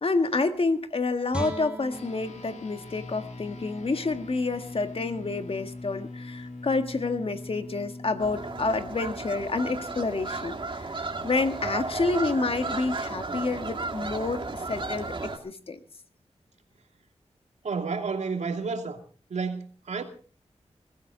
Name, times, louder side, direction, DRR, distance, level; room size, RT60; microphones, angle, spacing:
voice 1, 0.0-15.8, left 3 dB, 55° left, 1.7 m, -29 dB
Guitar, 1.3-4.5 4.9-5.0, right 2 dB, 10° right, 2.9 m, -40 dB
sound 1, 1.9-11.6, left 2 dB, 85° left, 2.6 m, -43 dB
sound 2, 8.2-15.4, right 3 dB, 45° right, 2.3 m, -34 dB
voice 2, 17.6-19.0 19.3-20.0, right 4 dB, 85° right, 2.6 m, -30 dB
22.5 x 14.5 x 3.9 m
wide cardioid pair, 75°, 12 cm